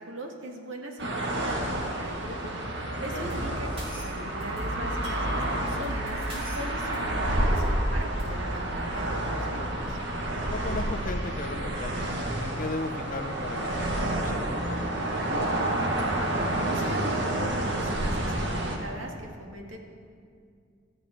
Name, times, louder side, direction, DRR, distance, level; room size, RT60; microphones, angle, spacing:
voice 1, 0.0-10.0 16.5-19.8, right 1 dB, 90° right, 1 dB, 2.1 m, -40 dB
sound 1, 1.0-18.8, right 1 dB, 65° right, 1.9 m, -29 dB
sound 2, 3.2-8.3, equal, 30° right, 4.1 m, -36 dB
voice 2, 10.5-15.8, left 2 dB, 45° left, 9 dB, 0.8 m, -37 dB
17.0 x 13.5 x 4.5 m, 2.2 s
head